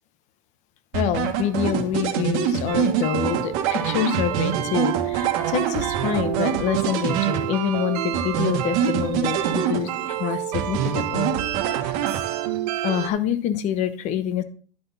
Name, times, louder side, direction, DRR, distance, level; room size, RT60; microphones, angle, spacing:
voice 1, 0.9-11.3 12.8-14.4, left 10 dB, 35° left, 12 dB, 0.9 m, -26 dB
sound 1, 0.9-7.8 8.1-10.2 10.5-12.6, right 8 dB, 45° right, 1.5 m, -25 dB
sound 2, 2.7-13.1, right 12 dB, 85° right, 1.1 m, -29 dB
11.0 x 6.1 x 4.0 m, 0.43 s
supercardioid pair, 165°, 20 cm